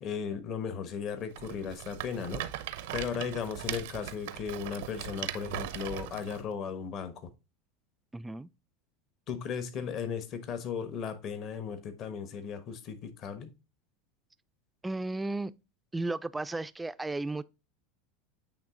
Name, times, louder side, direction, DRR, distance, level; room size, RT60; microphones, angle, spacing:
voice 1, 0.0-2.5 2.9-7.3 9.3-13.5, left 7 dB, 45° left, 1.1 m, -36 dB
Rattle, 1.3-6.4, right 13 dB, 75° right, 0.6 m, -39 dB
voice 2, 8.1-8.5 14.8-15.5 15.9-17.4, right 2 dB, 10° right, 0.4 m, -34 dB
8.6 x 3.1 x 3.7 m
hypercardioid pair, 105°, 0 cm